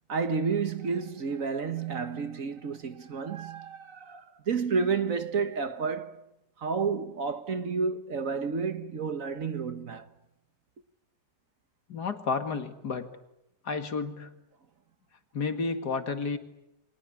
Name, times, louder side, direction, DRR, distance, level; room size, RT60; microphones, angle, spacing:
voice 1, 0.1-6.2 6.6-10.1, right 5 dB, 50° right, 1.6 m, -30 dB
voice 2, 11.9-13.1 13.6-14.3 15.3-16.4, left 4 dB, 70° left, 2.6 m, -31 dB
29.0 x 23.5 x 8.7 m
omnidirectional pair, 1.8 m